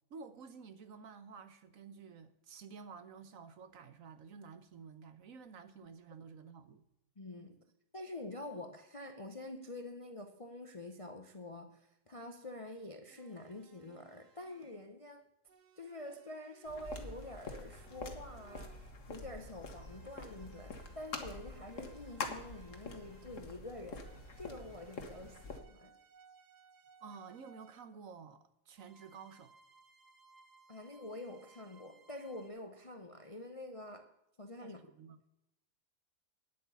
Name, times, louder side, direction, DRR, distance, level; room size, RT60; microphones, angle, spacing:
voice 1, 0.1-6.8 27.0-29.5 34.6-35.2, right 5 dB, 60° right, 1.2 m, -52 dB
voice 2, 7.2-7.6 7.9-15.2 15.8-18.8 19.1-25.9 30.7-34.1 34.4-34.9, left 1 dB, 30° left, 0.6 m, -47 dB
sound 1, 13.1-15.0 15.5-19.0 19.7-23.6 24.0-27.9 28.8-32.5, right 5 dB, 80° right, 1.6 m, -64 dB
sound 2, 16.7-25.6, left 3 dB, 55° left, 1.7 m, -46 dB
9.7 x 8.2 x 6.9 m
omnidirectional pair, 1.7 m